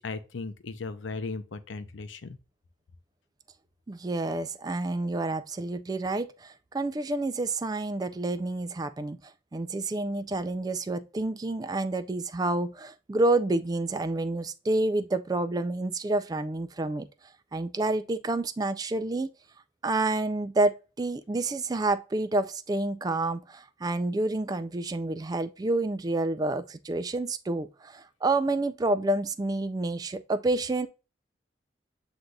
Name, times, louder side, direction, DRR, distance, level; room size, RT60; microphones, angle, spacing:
voice 1, 0.0-2.4, left 3 dB, 85° left, 0.6 m, -37 dB
voice 2, 3.9-9.2 9.5-17.1 17.5-19.3 19.8-30.9, right 2 dB, 20° right, 0.3 m, -29 dB
7.7 x 2.6 x 2.3 m
head